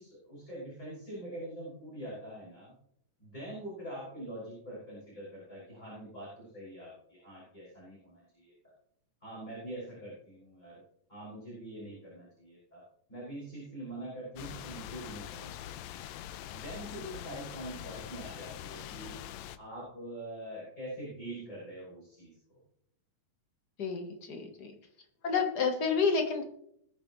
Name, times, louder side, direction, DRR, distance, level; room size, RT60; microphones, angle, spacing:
voice 1, 0.0-2.7 3.2-8.5 9.2-10.8 11.1-12.8 13.1-15.8 16.5-19.2 19.6-22.6, right 1 dB, 10° left, -9 dB, 6.4 m, -44 dB
sound 1, 14.4-19.6, left 12 dB, 80° left, 1.7 m, -43 dB
voice 2, 23.8-24.7 25.2-26.4, left 5 dB, 45° left, 4 dB, 1.4 m, -29 dB
20.5 x 9.2 x 3.2 m, 0.73 s
omnidirectional pair, 3.7 m